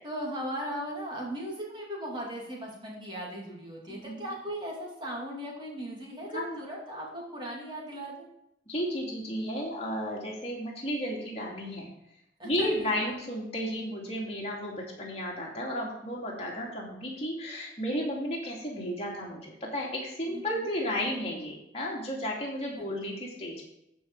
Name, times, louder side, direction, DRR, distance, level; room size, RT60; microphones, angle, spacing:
voice 1, 0.0-8.3 12.4-13.2 20.3-20.7 22.8-23.0, right 1 dB, 25° right, -3 dB, 2.7 m, -38 dB
voice 2, 3.9-4.3 6.3-6.6 8.7-11.9 12.4-23.5, equal, 35° left, -3 dB, 2.6 m, -33 dB
14.0 x 5.4 x 4.7 m, 0.83 s
head